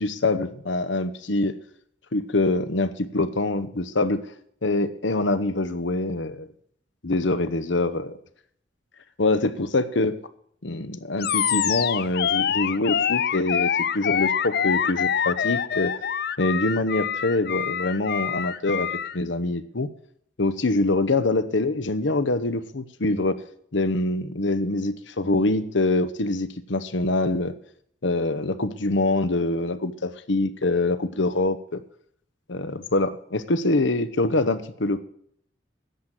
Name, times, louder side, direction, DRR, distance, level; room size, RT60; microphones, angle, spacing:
voice 1, 0.0-1.5 2.1-4.2 4.6-6.5 7.0-8.1 9.2-10.2 10.6-15.9 16.4-18.9 19.1-19.9 20.4-23.3 23.7-27.5 28.0-31.8 32.5-35.0, left 2 dB, 75° left, 12 dB, 0.9 m, -24 dB
Animal, 11.2-19.2, left 8 dB, 55° left, 0.5 m, -25 dB
10.5 x 7.6 x 8.2 m, 0.65 s
head